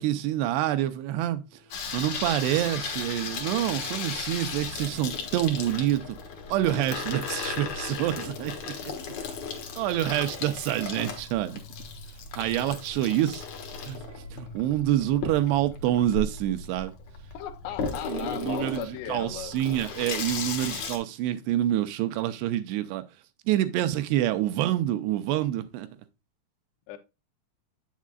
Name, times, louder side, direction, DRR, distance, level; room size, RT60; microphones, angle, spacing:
voice 1, 0.0-1.4 1.9-6.2 6.5-8.9 9.8-11.6 12.4-13.5 13.8-14.0 14.3-16.9 18.1-23.0 23.5-25.9, right 13 dB, 85° right, 2.6 m, -27 dB
sound 1, 0.8-14.5, left 3 dB, 65° right, 1.2 m, -52 dB
Water tap faucet / Sink (filling or washing), 1.7-21.0, left 5 dB, 60° left, 2.0 m, -36 dB
voice 2, 17.3-19.6 26.9-27.0, left 11 dB, 80° left, 2.9 m, -37 dB
8.4 x 7.3 x 2.4 m
omnidirectional pair, 5.0 m